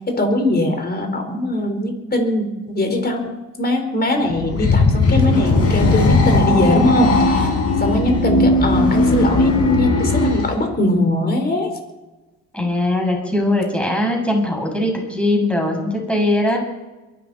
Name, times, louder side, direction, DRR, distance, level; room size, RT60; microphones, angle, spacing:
voice 1, 0.1-3.2 3.6-7.5 7.8-11.7, left 1 dB, 30° left, 4 dB, 4.5 m, -20 dB
sound 1, 4.3-10.5, left 2 dB, 50° left, 5.2 m, -17 dB
voice 2, 12.5-16.6, left 1 dB, 5° left, 0 dB, 6.6 m, -20 dB
23.0 x 12.5 x 4.3 m, 1.1 s
cardioid pair, 90°, 30 cm